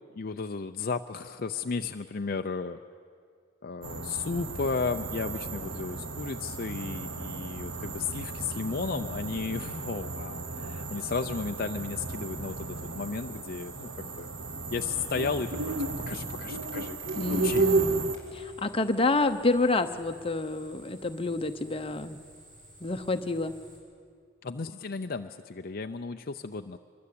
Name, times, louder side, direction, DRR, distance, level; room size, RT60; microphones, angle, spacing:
voice 1, 0.1-2.8 3.6-14.3 14.7-15.7 16.1-17.0 17.3-17.7 24.4-26.8, left 4 dB, 50° left, 6 dB, 0.6 m, -34 dB
sound 1, 3.8-18.2, right 3 dB, 90° right, 1.3 m, -33 dB
sound 2, 4.4-23.8, right 1 dB, 40° right, 7.6 m, -54 dB
voice 2, 17.2-18.0 18.3-22.2 22.8-23.5, left 2 dB, 30° left, 8 dB, 0.9 m, -28 dB
25.0 x 22.5 x 8.6 m, 2.2 s
head